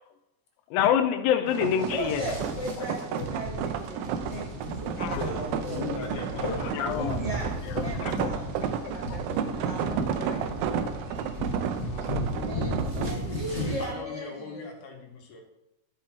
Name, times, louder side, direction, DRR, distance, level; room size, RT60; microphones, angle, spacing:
voice 1, 0.7-2.2 5.0-5.2 6.3-7.2 8.0-8.3 8.8-8.9 9.3-9.4 11.8-12.3, left 9 dB, 85° left, 6 dB, 2.4 m, -27 dB
sound 1, 1.5-13.9, equal, 30° right, 2.9 m, -35 dB
sound 2, 1.5-13.2, right 8 dB, 85° right, 2.4 m, -32 dB
voice 2, 1.9-6.1 6.4-6.5 6.9-8.6 8.9-10.4 10.7-10.8 11.7-14.7, right 1 dB, 20° left, -5 dB, 1.0 m, -37 dB
voice 3, 5.6-7.1 12.2-15.4, left 4 dB, 65° left, 1 dB, 2.8 m, -39 dB
14.0 x 4.8 x 4.6 m, 0.92 s
omnidirectional pair, 4.1 m